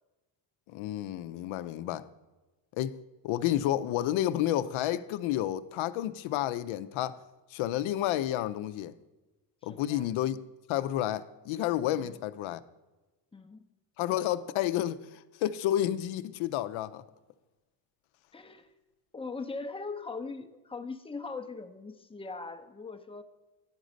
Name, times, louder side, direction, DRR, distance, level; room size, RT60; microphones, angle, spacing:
voice 1, 0.7-2.1 2.8-3.0 3.2-7.2 7.5-9.0 9.6-10.4 10.7-12.6 14.0-17.0, left 12 dB, 75° left, 0.5 m, -30 dB
voice 2, 9.7-10.1 11.9-12.2 13.3-13.7 18.3-18.7 19.1-23.2, left 4 dB, 10° left, 0.5 m, -40 dB
9.7 x 3.9 x 6.3 m
cardioid pair, 85°, 49 cm